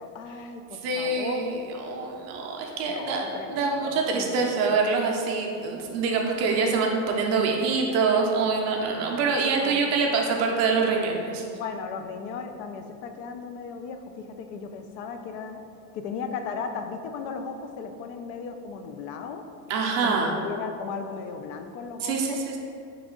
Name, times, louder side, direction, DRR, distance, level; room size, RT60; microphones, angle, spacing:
voice 1, 0.0-1.4 2.9-4.6 6.4-6.6 9.6-9.8 11.6-15.7 15.9-19.4 20.0-22.4, left 5 dB, 85° left, 6 dB, 0.5 m, -36 dB
voice 2, 0.8-11.4 19.7-20.3 22.0-22.6, right 4 dB, 40° right, 0 dB, 0.4 m, -25 dB
3.5 x 3.1 x 3.7 m, 2.5 s
cardioid pair, 175°, 40 cm